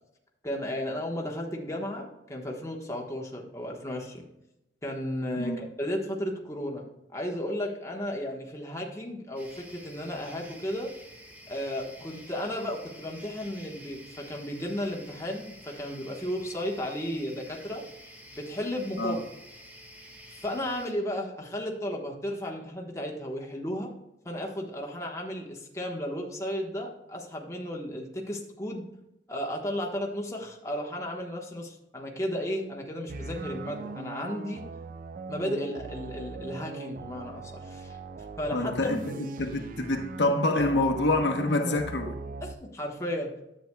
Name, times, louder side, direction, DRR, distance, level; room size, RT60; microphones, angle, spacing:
voice 1, 0.4-4.2 4.8-6.8 7.1-10.9 11.5-17.8 18.3-19.2 20.4-23.9 24.2-28.8 29.3-34.6 35.3-38.0 38.4-39.0 41.6-41.8 42.7-43.3, equal, 15° left, 1.2 m, -34 dB
voice 2, 5.4-5.7 19.0-19.2 38.5-42.1, left 2 dB, 90° left, 1.0 m, -27 dB
sound 1, 9.4-20.9, equal, 10° right, 1.2 m, -50 dB
sound 2, 33.1-42.6, right 3 dB, 50° right, 0.4 m, -40 dB
10.5 x 7.7 x 2.3 m
head